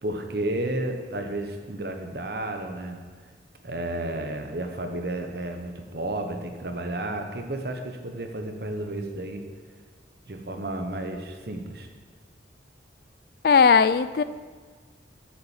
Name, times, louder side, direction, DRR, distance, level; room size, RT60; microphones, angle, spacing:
voice 1, 0.0-3.0 3.6-9.5 10.2-11.9, right 1 dB, 60° right, 5 dB, 1.0 m, -32 dB
voice 2, 13.4-14.2, left 6 dB, 55° left, 15 dB, 0.3 m, -18 dB
7.7 x 7.1 x 7.3 m, 1.5 s
head